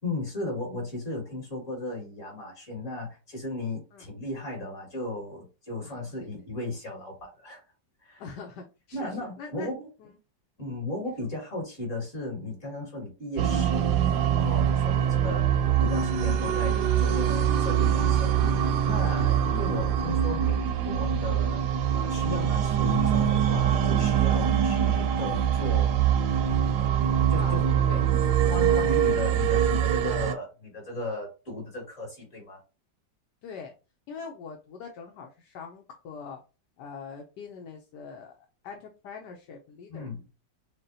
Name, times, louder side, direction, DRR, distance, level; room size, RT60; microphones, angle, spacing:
voice 1, 0.0-7.6 8.0-8.4 8.9-9.9 10.6-25.9 26.7-27.6 28.5-32.6 39.9-40.2, left 2 dB, 45° left, -1 dB, 2.5 m, -35 dB
voice 2, 8.2-9.1 9.4-9.7 10.0-10.2 15.0-15.1 19.2-19.4 27.3-27.6 27.9-28.0 28.5-29.2 29.5-29.6 33.4-33.7 34.1-36.4 36.8-38.4 38.6-40.1, left 5 dB, 75° left, 2 dB, 1.3 m, -43 dB
sound 1, 13.4-30.3, right 9 dB, 80° right, 1.3 m, -24 dB
6.4 x 2.2 x 2.8 m, 0.31 s
omnidirectional pair, 1.9 m